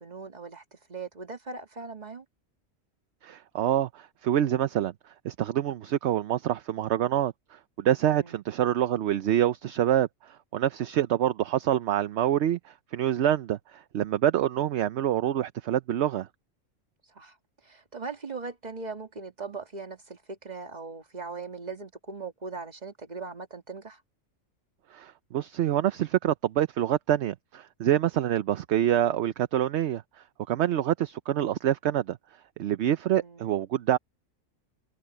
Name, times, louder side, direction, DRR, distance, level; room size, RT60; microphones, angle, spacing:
voice 1, 0.0-2.3 8.1-8.4 17.0-24.0 33.2-33.6, right 4 dB, 30° right, 1.9 m, -40 dB
voice 2, 3.2-4.9 5.2-16.3 24.9-30.0 30.5-32.2 32.6-34.0, right 11 dB, 65° right, 0.9 m, -26 dB
omnidirectional pair, 1.4 m